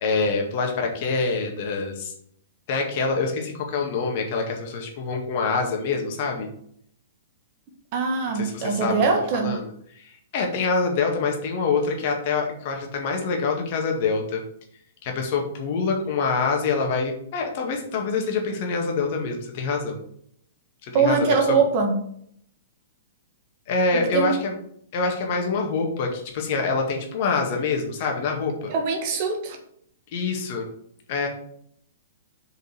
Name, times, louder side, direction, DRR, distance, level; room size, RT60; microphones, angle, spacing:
voice 1, 0.0-2.1 2.7-6.5 8.3-9.0 9.3-9.7 10.0-14.4 15.0-20.0 20.8-21.6 23.7-24.5 24.9-28.7 30.1-30.7 31.1-31.3, left 4 dB, 40° left, 2 dB, 1.9 m, -25 dB
voice 2, 7.9-9.6 20.9-22.1 23.9-24.3 28.7-29.6, right 5 dB, 40° right, 3 dB, 1.7 m, -22 dB
6.8 x 5.2 x 6.5 m, 0.67 s
figure-of-eight pair, 110°, 0 cm